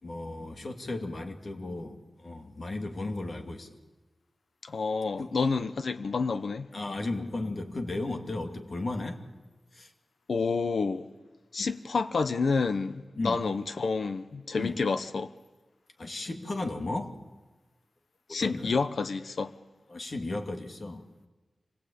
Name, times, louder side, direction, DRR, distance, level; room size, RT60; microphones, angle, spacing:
voice 1, 0.0-3.7 5.2-5.3 6.7-9.2 9.7-9.9 11.6-11.7 13.2-13.4 14.6-14.8 16.0-17.1 18.3-18.7 19.9-21.1, left 2 dB, 50° left, 2.3 m, -35 dB
voice 2, 4.6-6.7 10.3-11.1 11.5-15.3 18.3-19.5, left 4 dB, 75° left, 0.9 m, -29 dB
26.0 x 19.0 x 8.7 m
wide cardioid pair, 115°, 0 cm